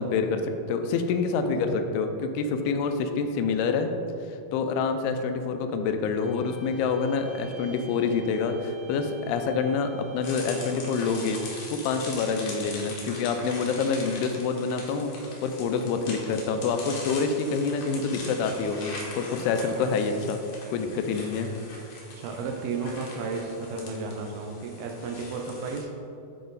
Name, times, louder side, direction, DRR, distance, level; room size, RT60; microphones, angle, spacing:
voice 1, 0.0-3.9 4.5-11.4 11.7-20.4 20.7-21.5, left 5 dB, 85° left, 7 dB, 2.6 m, -27 dB
sound 1, 6.1-11.9, equal, 45° right, 1.7 m, -50 dB
sound 2, 10.2-25.8, left 2 dB, 70° left, 1.5 m, -42 dB
voice 2, 22.2-25.9, right 4 dB, 80° right, 2 dB, 2.4 m, -33 dB
9.8 x 4.2 x 4.0 m, 2.8 s
omnidirectional pair, 4.6 m